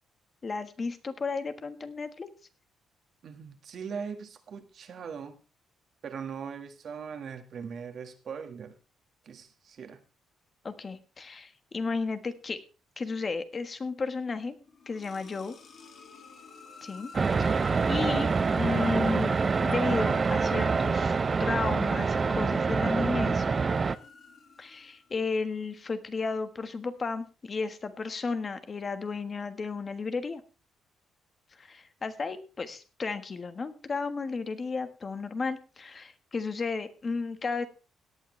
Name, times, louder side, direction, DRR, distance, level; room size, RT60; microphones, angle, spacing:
voice 1, 0.4-2.3 10.6-12.6 13.0-14.5 14.9-15.5 16.8-17.1 17.4-23.4 24.6-30.4 31.6-37.7, left 4 dB, 35° left, 10 dB, 1.4 m, -33 dB
voice 2, 3.2-5.4 6.0-8.8 9.3-10.0 18.0-18.3, right 6 dB, 60° right, 7 dB, 1.7 m, -40 dB
sound 1, 14.6-25.3, left 4 dB, 55° left, 2.5 m, -50 dB
sound 2, 17.1-24.0, right 4 dB, 35° right, 0.6 m, -26 dB
17.5 x 8.8 x 3.3 m, 0.32 s
cardioid pair, 90°, 0 cm